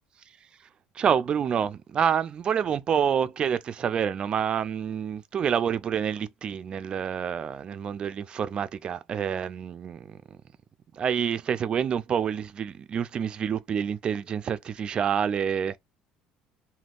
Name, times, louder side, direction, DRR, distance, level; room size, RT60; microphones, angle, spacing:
voice 1, 1.0-10.2 10.9-15.8, right 8 dB, 40° right, 0.3 m, -27 dB
3.4 x 2.2 x 2.4 m
supercardioid pair, 100°, 3 cm